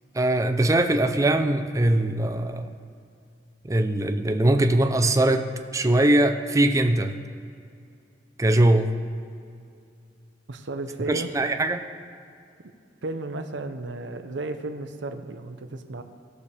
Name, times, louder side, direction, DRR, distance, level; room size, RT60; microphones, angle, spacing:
voice 1, 0.1-2.7 3.6-7.2 8.4-9.0 11.1-11.8, right 1 dB, 15° right, 6 dB, 0.5 m, -21 dB
voice 2, 10.5-11.3 13.0-16.0, right 2 dB, 75° right, 7 dB, 0.7 m, -33 dB
17.5 x 6.8 x 3.4 m, 2.4 s
head